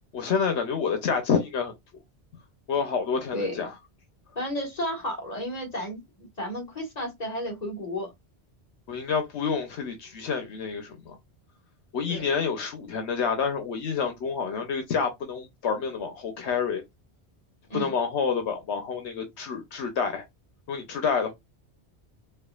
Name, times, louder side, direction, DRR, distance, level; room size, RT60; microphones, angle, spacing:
voice 1, 0.1-1.7 2.7-3.7 8.9-11.2 11.9-16.8 17.7-20.2 20.7-21.3, left 6 dB, 85° left, 1.1 m, -28 dB
voice 2, 4.3-8.1 12.1-12.3 17.7-18.0, equal, 35° left, 1.7 m, -32 dB
4.5 x 2.5 x 2.3 m
omnidirectional pair, 1.1 m